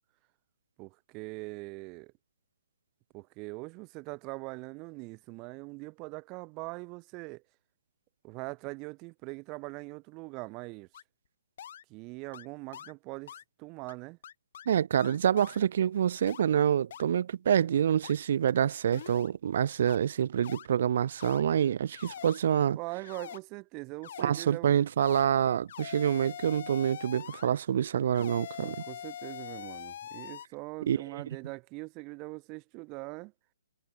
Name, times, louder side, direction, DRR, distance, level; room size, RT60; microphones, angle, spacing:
voice 1, 0.8-2.1 3.1-7.4 8.2-10.9 11.9-14.2 22.7-24.7 28.2-28.3 28.6-33.3, right 27 dB, 20° right, 1.7 m, -42 dB
sound 1, 10.9-11.0 11.6-11.8 12.3-12.5 12.7-12.9 13.3-13.4 13.9-14.0 14.2-14.7 15.0-15.6 16.3-16.4 16.9-17.0 17.5-17.6 18.0-18.1 18.5-18.6 18.9-19.3 19.8-20.0 20.4-20.7 21.2-21.4 21.9-22.4 23.0-23.4 24.0-24.2 25.0-25.3 25.7-27.5 28.1-30.5, left 10 dB, 45° left, 3.9 m, -43 dB
voice 2, 14.7-22.8 24.2-28.7 30.9-31.2, right 9 dB, 50° right, 0.8 m, -27 dB
hypercardioid pair, 165°, 0 cm